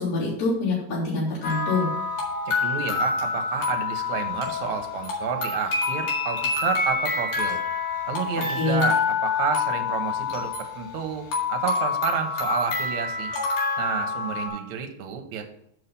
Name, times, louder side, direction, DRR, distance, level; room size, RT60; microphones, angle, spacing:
voice 1, 0.0-1.9 8.6-8.9, left 3 dB, 55° left, -11 dB, 4.4 m, -25 dB
sound 1, 1.4-14.5, left 4 dB, 80° left, 3.4 m, -27 dB
voice 2, 2.6-7.6 8.1-13.3 13.8-15.4, right 8 dB, 70° right, 5 dB, 2.2 m, -30 dB
6.4 x 5.6 x 6.8 m, 0.72 s
omnidirectional pair, 3.6 m